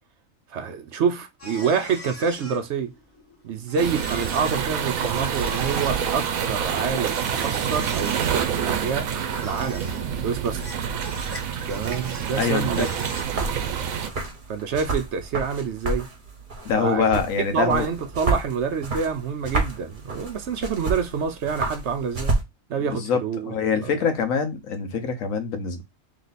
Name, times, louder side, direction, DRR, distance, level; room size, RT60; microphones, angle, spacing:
voice 1, 0.5-2.9 3.4-9.1 9.4-9.9 10.2-10.6 11.7-12.9 14.5-16.1 16.8-17.1 17.5-22.3 22.7-24.1, right 6 dB, 65° right, 0.8 m, -27 dB
sound 1, 1.4-13.2, equal, 10° left, 0.8 m, -42 dB
sound 2, 3.8-14.1, right 8 dB, 80° right, 1.1 m, -27 dB
voice 2, 12.3-12.9 16.6-17.9 23.0-25.8, left 6 dB, 75° left, 1.2 m, -24 dB
sound 3, 12.6-22.4, right 3 dB, 40° right, 1.2 m, -30 dB
3.2 x 3.2 x 3.9 m
omnidirectional pair, 1.4 m